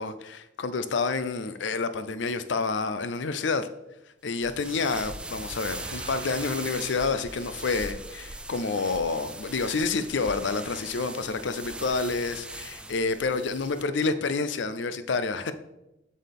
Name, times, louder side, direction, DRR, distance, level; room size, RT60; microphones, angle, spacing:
voice 1, 0.0-3.7 4.2-15.5, left 4 dB, 75° left, 0.5 m, -29 dB
sound 1, 4.3-13.8, right 2 dB, 5° right, 0.4 m, -40 dB
sound 2, 5.4-9.4, right 3 dB, 65° right, 2.0 m, -49 dB
7.5 x 6.3 x 3.6 m
head